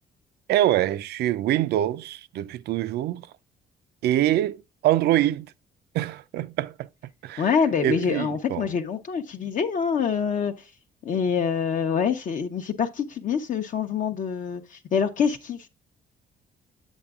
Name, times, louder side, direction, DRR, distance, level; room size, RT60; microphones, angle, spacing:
voice 1, 0.5-3.3 4.0-5.5 5.9-6.9 7.2-7.4 7.8-8.7, right 13 dB, 80° right, 0.4 m, -24 dB
voice 2, 7.4-10.7 11.0-15.7, left 6 dB, 50° left, 0.7 m, -26 dB
8.8 x 7.2 x 2.3 m
cardioid pair, 120°, 17 cm